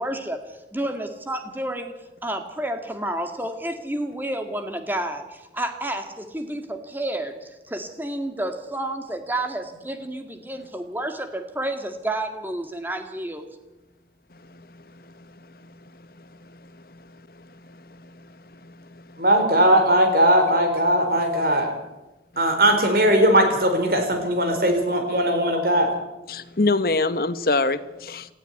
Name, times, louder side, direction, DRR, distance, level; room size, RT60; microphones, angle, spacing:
voice 1, 0.0-2.0 2.2-13.5, right 1 dB, 10° right, 6 dB, 2.0 m, -30 dB
voice 2, 17.4-18.2 18.6-19.2 26.3-28.3, left 3 dB, 55° left, 13 dB, 1.1 m, -26 dB
voice 3, 19.2-21.7 22.4-25.9, right 1 dB, 55° right, 5 dB, 4.6 m, -19 dB
18.0 x 15.0 x 9.5 m, 1.0 s
head